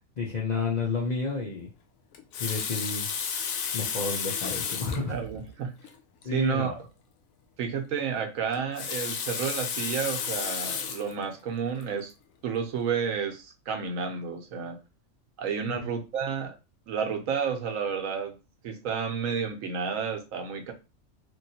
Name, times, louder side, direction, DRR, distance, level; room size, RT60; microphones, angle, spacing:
voice 1, 0.2-1.7 2.4-3.1 3.7-5.1 6.2-6.8 15.7-15.9, left 4 dB, 55° left, 0.5 m, -30 dB
Water tap faucet, 2.1-5.1 5.8-5.9 6.2-6.3 8.5-11.1 11.8-12.0, left 7 dB, 85° left, 1.0 m, -32 dB
voice 2, 4.9-5.7 6.3-6.8 7.6-12.1 12.4-14.8 15.4-16.5 16.9-18.4 18.6-20.7, right 6 dB, 80° right, 1.1 m, -31 dB
3.0 x 2.6 x 2.7 m
omnidirectional pair, 1.4 m